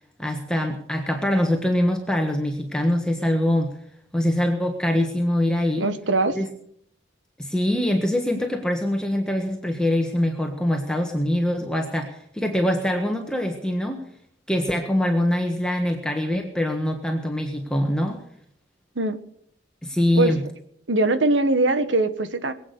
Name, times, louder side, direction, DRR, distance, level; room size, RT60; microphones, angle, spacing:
voice 1, 0.2-3.8 4.1-5.9 6.3-6.5 7.4-14.0 14.5-18.2 19.8-20.4, left 1 dB, 5° left, 2 dB, 1.4 m, -23 dB
voice 2, 5.8-6.4 18.9-19.2 20.1-20.3 20.9-22.5, right 2 dB, 85° right, 10 dB, 1.4 m, -21 dB
22.0 x 8.5 x 6.7 m, 0.67 s
head